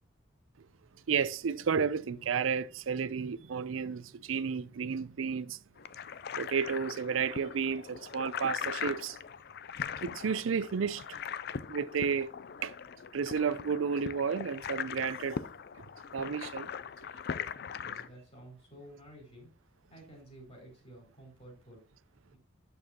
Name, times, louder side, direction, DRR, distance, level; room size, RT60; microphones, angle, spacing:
voice 1, 1.1-5.6 6.4-9.2 10.0-11.2 11.7-12.3 12.6-12.8 13.1-15.4 16.1-16.7, right 6 dB, 85° right, 0.5 m, -32 dB
sound 1, 5.8-18.1, left 7 dB, 55° left, 0.4 m, -40 dB
voice 2, 17.8-19.5 19.9-21.8, right 1 dB, 30° left, 4.1 m, -52 dB
8.5 x 6.9 x 2.9 m
head